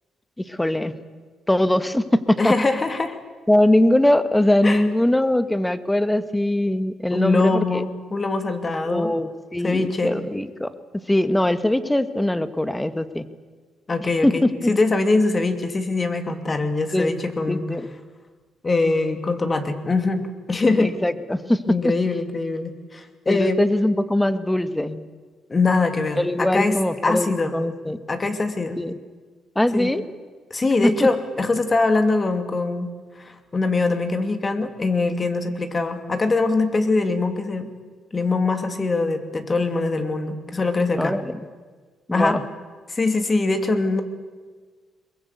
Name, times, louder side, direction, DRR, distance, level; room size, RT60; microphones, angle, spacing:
voice 1, 0.5-0.9 1.5-2.5 3.5-7.8 8.9-10.7 11.1-13.2 14.2-14.7 16.9-17.1 17.5-17.9 20.8-21.6 21.8-21.9 23.3-25.0 26.2-28.0 28.8-28.9 29.5-30.0 31.0-31.1 41.0-41.3 42.1-42.4, left 1 dB, 10° left, 12 dB, 1.4 m, -21 dB
voice 2, 2.4-3.2 4.6-4.8 7.1-9.1 9.6-10.2 13.9-17.7 18.6-20.2 20.5-20.9 21.7-23.6 25.5-26.8 27.0-27.5 28.1-28.8 29.7-29.9 30.5-32.9 33.2-37.7 38.1-41.1 42.1-42.4 42.9-44.0, left 3 dB, 30° left, 7 dB, 2.7 m, -22 dB
22.0 x 22.0 x 8.3 m, 1.5 s
cardioid pair, 90°, 0 cm